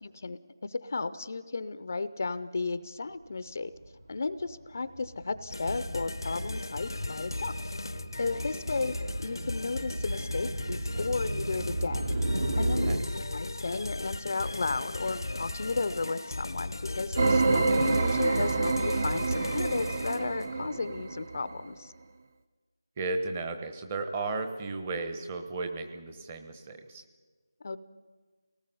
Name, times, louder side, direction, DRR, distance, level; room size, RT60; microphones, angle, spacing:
voice 1, 0.0-3.7 4.1-7.6 8.2-12.1 12.6-12.9 13.3-21.9 27.6-27.8, left 3 dB, 40° left, 14 dB, 0.6 m, -34 dB
sound 1, 3.8-4.1 4.4-13.0, right 1 dB, 70° right, 2.3 m, -34 dB
sound 2, 5.5-20.6, left 2 dB, 80° left, 0.8 m, -37 dB
sound 3, 17.2-21.5, right 3 dB, 30° right, 0.7 m, -27 dB
voice 2, 23.0-27.0, right 3 dB, 15° right, 6 dB, 1.0 m, -34 dB
28.5 x 19.0 x 5.5 m, 1.4 s
figure-of-eight pair, 175°, 2 cm